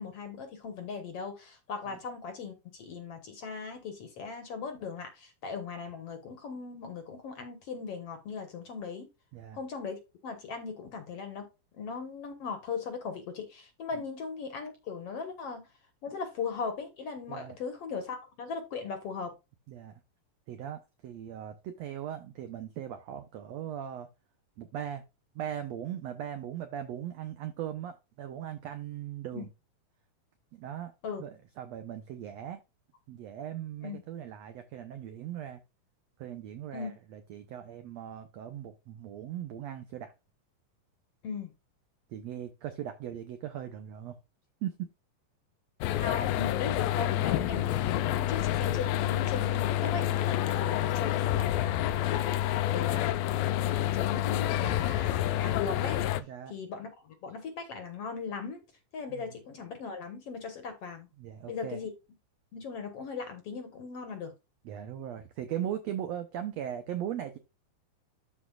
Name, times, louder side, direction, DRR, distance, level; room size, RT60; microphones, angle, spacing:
voice 1, 0.0-9.1 9.5-11.5 11.7-15.7 16.0-19.3 29.3-29.5 31.0-31.2 33.8-34.0 36.7-36.9 41.2-41.5 45.9-56.1 56.5-58.6 58.9-61.1 61.5-61.9 62.5-64.3, left 5 dB, 60° left, 1.8 m, -38 dB
voice 2, 19.7-20.0 20.5-24.1 24.6-25.0 25.3-29.5 30.5-30.9 31.2-32.6 33.1-35.6 36.2-40.1 42.1-44.2 44.6-44.9 47.4-47.5 56.2-56.5 59.1-59.4 61.2-61.8 64.6-67.4, right 10 dB, 85° right, 1.5 m, -39 dB
sound 1, 45.8-56.2, left 12 dB, 85° left, 2.4 m, -28 dB
13.0 x 4.4 x 2.3 m
omnidirectional pair, 4.0 m